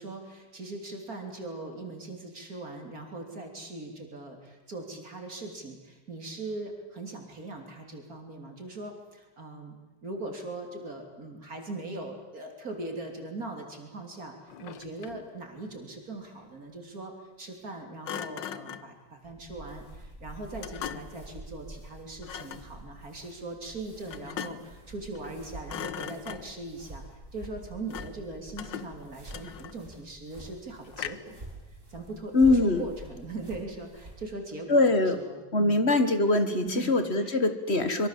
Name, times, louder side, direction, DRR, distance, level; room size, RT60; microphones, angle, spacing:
voice 1, 0.0-9.7 10.0-14.3 14.6-27.0 27.3-31.4 31.9-35.8 36.6-36.9 37.2-37.4, right 2 dB, 50° right, 3 dB, 3.7 m, -40 dB
Thump thud, 14.5-15.3 18.0-18.9 20.6-21.3 22.2-22.7 24.1-24.8 25.1-25.4 25.7-26.7 27.9-28.3 28.6-29.9 30.9-31.4, left 10 dB, 90° left, 1.7 m, -39 dB
sound 1, 19.2-34.3, right 2 dB, 30° right, 7.9 m, -47 dB
voice 2, 32.3-32.9 34.7-35.2 35.5-38.1, left 2 dB, 35° left, 9 dB, 1.9 m, -23 dB
25.5 x 23.5 x 7.5 m, 1.2 s
omnidirectional pair, 1.9 m